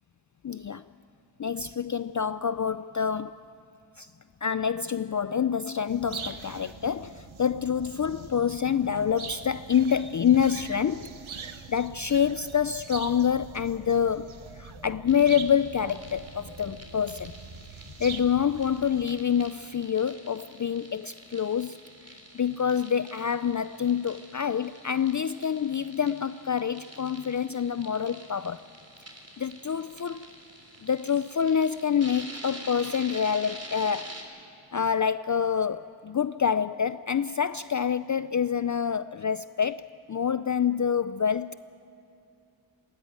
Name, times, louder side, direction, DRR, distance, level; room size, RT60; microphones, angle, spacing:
voice 1, 0.4-0.8 1.4-3.4 4.0-4.1 4.4-11.2 11.7-17.3 18.0-21.8 22.1-28.6 29.4-30.3 30.8-34.2 34.7-41.6, left 7 dB, 40° left, 0.4 m, -27 dB
sound 1, 5.9-19.1, right 5 dB, 85° right, 1.1 m, -43 dB
sound 2, 15.1-34.2, right 1 dB, 30° right, 3.5 m, -47 dB
19.5 x 18.5 x 9.0 m
wide cardioid pair, 45°, 47 cm